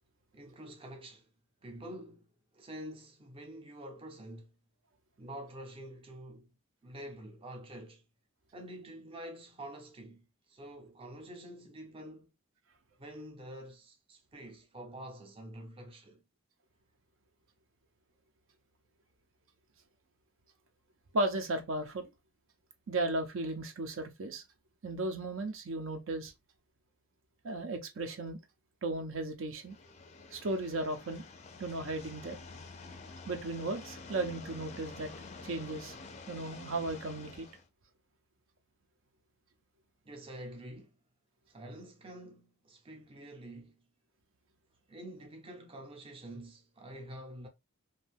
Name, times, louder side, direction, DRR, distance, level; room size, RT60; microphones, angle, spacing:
voice 1, 0.3-1.3 1.6-4.5 5.2-6.5 6.8-8.0 8.5-12.3 13.0-16.2 40.0-41.0 41.5-43.8 44.9-47.5, right 1 dB, 25° right, 0.5 m, -47 dB
voice 2, 21.1-22.1 22.9-24.4 24.8-26.3 27.4-28.4 28.8-29.8 30.3-31.3 31.6-32.4 33.3-35.1 35.4-35.9 36.3-37.5, right 2 dB, 65° right, 0.5 m, -35 dB
sound 1, 29.6-37.6, left 3 dB, 30° left, 0.4 m, -49 dB
2.6 x 2.2 x 3.3 m
head